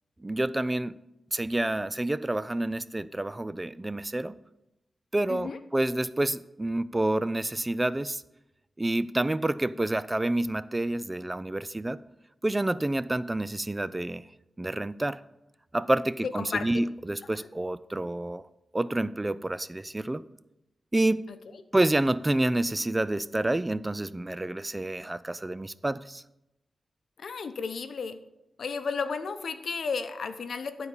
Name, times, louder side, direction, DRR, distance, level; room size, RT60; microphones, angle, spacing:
voice 1, 0.2-1.0 1.3-4.3 5.1-8.2 8.8-12.0 12.4-14.3 14.6-15.2 15.7-18.5 18.7-20.2 20.9-21.2 21.7-26.2, right 1 dB, 20° right, 16 dB, 0.3 m, -28 dB
voice 2, 5.3-5.6 16.4-16.7 27.2-28.2 28.6-30.9, left 5 dB, 75° left, 10 dB, 0.7 m, -33 dB
12.0 x 4.1 x 7.1 m, 0.89 s
wide cardioid pair, 85°, 0 cm